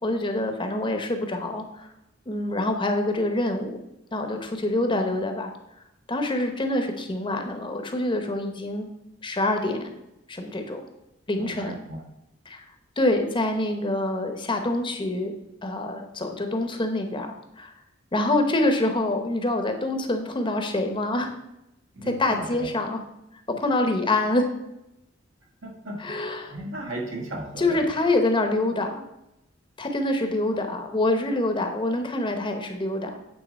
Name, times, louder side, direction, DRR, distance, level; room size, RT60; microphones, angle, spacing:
voice 1, 0.0-1.9 2.3-3.8 4.1-5.5 6.1-8.9 9.2-9.8 10.3-10.8 11.3-11.8 12.5-12.6 13.0-15.3 15.6-17.3 17.6-17.7 18.1-21.3 22.0-23.0 23.5-24.5 26.0-26.5 27.6-29.0 29.8-33.1, left 2 dB, 25° left, 5 dB, 0.8 m, -26 dB
voice 2, 11.4-12.0 21.9-22.7 25.6-26.0 26.5-27.8, right 1 dB, 75° right, -1 dB, 1.6 m, -35 dB
8.6 x 3.8 x 5.2 m, 0.88 s
head